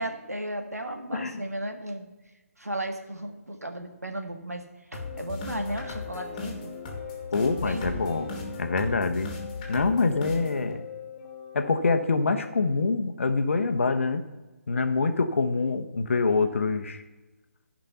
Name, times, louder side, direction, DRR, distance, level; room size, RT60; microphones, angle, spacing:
voice 1, 0.0-2.1 2.6-6.7 7.6-7.9, right 1 dB, 90° right, 4 dB, 1.7 m, -35 dB
voice 2, 1.1-1.4 7.3-8.3 8.6-9.3 9.7-10.8 11.5-14.3 14.7-17.0, left 4 dB, 60° left, 7 dB, 1.1 m, -25 dB
sound 1, 4.9-12.9, left 4 dB, 25° left, 2.1 m, -38 dB
15.0 x 5.3 x 5.7 m, 1.1 s
figure-of-eight pair, 145°, 8 cm